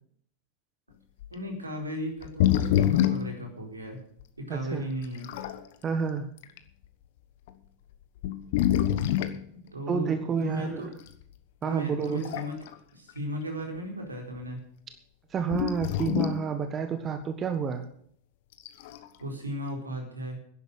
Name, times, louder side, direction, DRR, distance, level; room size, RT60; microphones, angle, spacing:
sound 1, 1.2-1.3 2.2-3.4 4.2-4.3 5.0-5.6 6.4-6.6 7.5-7.6 8.2-9.4 11.1-11.2 12.0-12.7 13.1-13.2 15.5-16.5 18.5-19.1, left 11 dB, 50° left, 1.3 m, -26 dB
voice 1, 1.3-4.0 4.4-5.3 9.7-10.9 11.6-12.6 12.9-14.6 19.2-20.4, equal, 80° right, 2 dB, 4.3 m, -36 dB
voice 2, 4.5-4.9 5.8-6.3 9.9-10.9 11.6-12.3 15.3-17.8, right 6 dB, 25° right, 8 dB, 1.3 m, -29 dB
11.0 x 11.0 x 8.0 m, 0.64 s
figure-of-eight pair, 90°, 0 cm